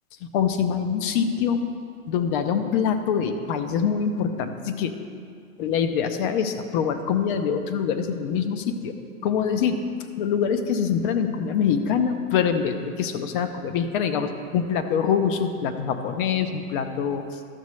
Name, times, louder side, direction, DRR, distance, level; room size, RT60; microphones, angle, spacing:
voice 1, 0.3-1.6 2.1-5.0 5.6-9.0 9.2-9.8 10.2-17.4, left 7 dB, 40° left, 8 dB, 0.7 m, -24 dB
12.5 x 7.3 x 3.1 m, 2.3 s
hypercardioid pair, 140°, 42 cm